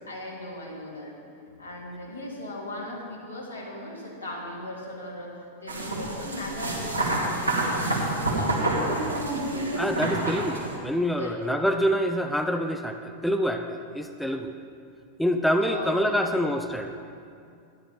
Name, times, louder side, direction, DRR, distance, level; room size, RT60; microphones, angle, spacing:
voice 1, 0.1-1.1 1.6-5.3 5.6-8.0 8.3-8.7 11.2-11.5 15.6-16.3, left 1 dB, 80° left, -6 dB, 2.8 m, -38 dB
sound 1, 5.7-10.8, right 2 dB, 85° right, 1.9 m, -28 dB
voice 2, 9.8-14.5 15.2-16.9, equal, 5° left, 6 dB, 0.5 m, -26 dB
12.5 x 10.5 x 3.5 m, 2.4 s
figure-of-eight pair, 90°, 0 cm